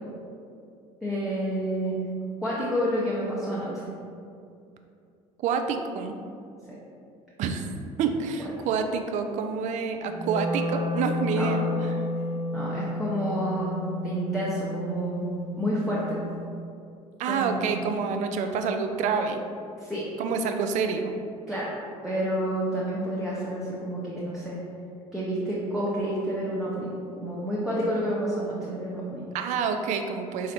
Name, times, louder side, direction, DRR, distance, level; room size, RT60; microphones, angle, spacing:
voice 1, 1.0-2.0 2.4-3.7 6.7-6.8 11.3-11.5 12.5-13.8 14.0-15.3 15.6-16.2 17.3-17.8 19.8-20.0 21.5-21.7 22.0-24.6 25.1-26.9 27.2-29.2, equal, ahead, -7 dB, 0.7 m, -29 dB
voice 2, 5.4-6.1 7.4-7.7 8.0-12.0 17.2-19.4 20.2-21.1 29.3-30.5, right 5 dB, 40° right, 6 dB, 0.4 m, -28 dB
Wind instrument woodwind instrument, 10.1-16.3, left 1 dB, 15° right, 1.4 m, -31 dB
4.1 x 2.5 x 4.1 m, 2.5 s
figure-of-eight pair, 60°, 19 cm